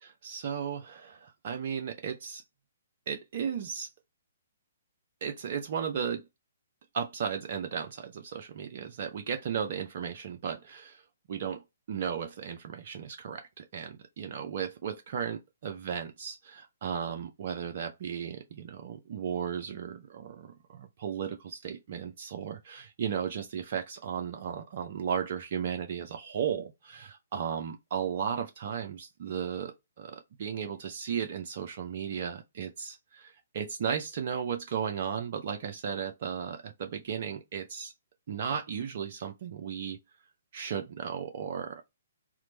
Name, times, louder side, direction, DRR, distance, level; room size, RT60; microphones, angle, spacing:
voice 1, 0.0-2.4 3.1-3.9 5.2-6.3 6.9-11.0 11.3-37.9 38.3-40.0 40.5-41.9, right 7 dB, 45° right, 0.4 m, -35 dB
2.9 x 2.1 x 3.8 m
figure-of-eight pair, 125°, 0 cm